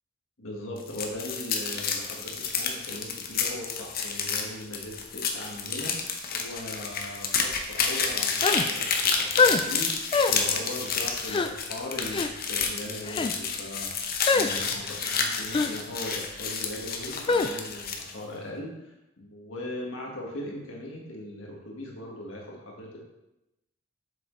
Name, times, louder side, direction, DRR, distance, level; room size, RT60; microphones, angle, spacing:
voice 1, 0.4-6.0 6.3-9.9 10.3-13.9 14.3-23.0, left 1 dB, 90° left, -1 dB, 1.7 m, -39 dB
sound 1, 0.8-18.1, left 5 dB, 50° left, 0.8 m, -30 dB
sound 2, 8.4-8.7 9.4-9.6 10.1-10.4 11.3-11.5 12.1-12.3 13.0-13.3 14.3-14.5 15.5-15.7 17.3-17.5, left 4 dB, 25° left, 0.3 m, -23 dB
7.4 x 6.2 x 3.2 m, 0.94 s
head